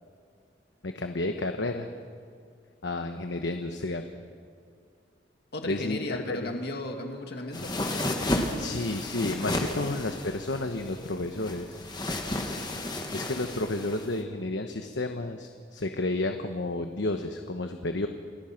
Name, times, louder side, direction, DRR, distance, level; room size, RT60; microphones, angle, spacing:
voice 1, 0.8-1.9 2.8-4.0 5.6-6.0 6.3-6.6 8.6-11.8 13.1-18.1, left 2 dB, 80° left, 6 dB, 1.1 m, -31 dB
voice 2, 5.5-7.7 9.8-9.9, left 2 dB, 60° left, 3 dB, 2.3 m, -35 dB
sound 1, 7.5-14.2, left 1 dB, 25° left, 1.8 m, -32 dB
29.0 x 19.0 x 5.9 m, 2.3 s
head